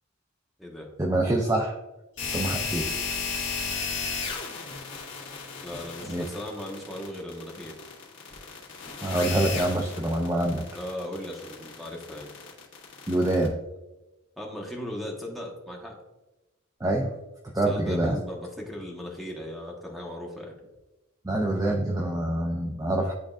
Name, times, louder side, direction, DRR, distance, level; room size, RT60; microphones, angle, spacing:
voice 1, 1.0-1.8 2.2-2.9 6.1-6.2 9.0-10.6 13.1-13.6 16.8-17.1 17.4-18.2 21.2-23.1, right 1 dB, 15° right, 0 dB, 0.4 m, -26 dB
sound 1, 2.2-13.5, left 5 dB, 55° left, 1.8 m, -34 dB
voice 2, 5.6-7.8 10.7-12.3 14.4-15.9 17.7-20.5, left 1 dB, ahead, -2 dB, 1.1 m, -37 dB
10.5 x 3.8 x 2.4 m, 1.0 s
head